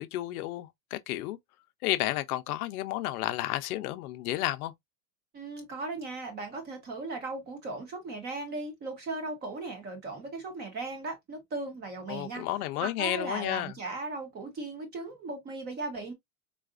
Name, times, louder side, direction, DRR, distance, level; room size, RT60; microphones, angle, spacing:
voice 1, 0.0-1.4 1.8-4.7 12.1-13.7, left 15 dB, 75° left, 0.6 m, -32 dB
voice 2, 5.3-12.4 12.8-16.1, right 3 dB, 20° right, 0.9 m, -37 dB
3.9 x 2.4 x 2.4 m
supercardioid pair, 165°, 44 cm